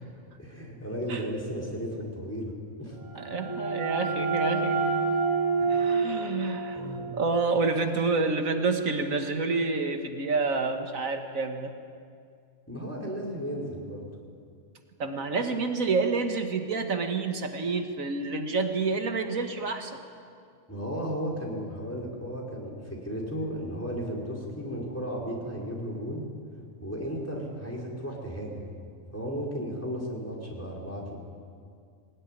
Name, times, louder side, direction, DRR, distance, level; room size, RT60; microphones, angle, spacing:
voice 1, 0.4-2.5 2.8-3.0 5.6-5.9 6.7-7.1 12.7-14.0 20.7-26.3 26.8-28.7 29.1-31.2, equal, 10° left, -3 dB, 4.6 m, -34 dB
sound 1, 3.0-8.5, right 4 dB, 30° left, 2.6 m, -29 dB
voice 2, 3.2-4.8 5.7-6.9 7.1-11.7 15.0-20.0, right 4 dB, 90° right, 5 dB, 2.0 m, -28 dB
21.0 x 19.0 x 10.0 m, 2.3 s
omnidirectional pair, 1.4 m